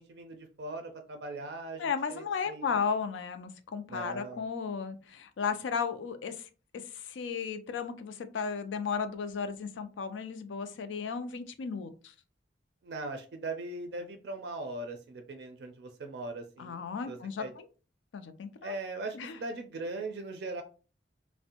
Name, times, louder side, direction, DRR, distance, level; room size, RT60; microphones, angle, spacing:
voice 1, 0.0-2.9 3.9-4.4 12.8-16.8 17.1-17.5 18.6-20.6, right 2 dB, 60° right, 6 dB, 0.4 m, -40 dB
voice 2, 1.8-12.1 16.6-17.7 18.1-18.8 19.1-19.3, left 6 dB, 85° left, 9 dB, 0.4 m, -35 dB
2.5 x 2.1 x 2.7 m, 0.35 s
head